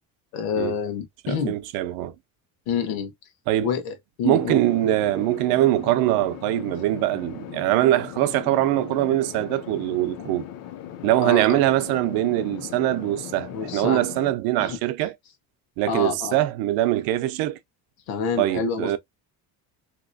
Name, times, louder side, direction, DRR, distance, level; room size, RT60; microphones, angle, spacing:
voice 1, 0.3-1.5 2.7-3.1 3.6-4.6 11.2-11.6 13.5-14.0 14.6-14.8 15.9-16.4 18.1-19.0, left 6 dB, 85° left, 1.2 m, -28 dB
voice 2, 1.2-2.2 3.5-3.7 4.2-10.5 11.0-15.1 15.8-17.6 18.4-19.0, right 14 dB, 75° right, 0.5 m, -23 dB
sound 1, 4.3-14.3, left 10 dB, 45° left, 0.5 m, -39 dB
3.0 x 2.9 x 2.6 m
cardioid pair, 170°, 36 cm